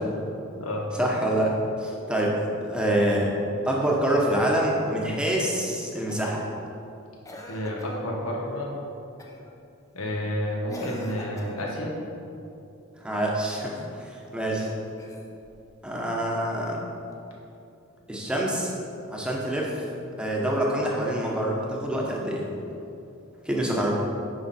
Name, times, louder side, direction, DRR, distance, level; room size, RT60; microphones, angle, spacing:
voice 1, 1.0-3.3 3.7-6.4 13.0-14.7 15.8-16.8 18.1-18.7 19.1-19.8 20.2-22.5 23.4-23.9, right 1 dB, 5° right, -3 dB, 1.0 m, -26 dB
Cough, 6.1-6.5 7.2-8.0 9.2-9.5 10.7-11.8 14.9-15.7 17.1-17.2, left 1 dB, 15° left, 0.7 m, -42 dB
voice 2, 7.5-8.7 9.9-11.9, left 1 dB, 85° left, -2 dB, 1.6 m, -30 dB
9.5 x 5.8 x 4.3 m, 2.7 s
head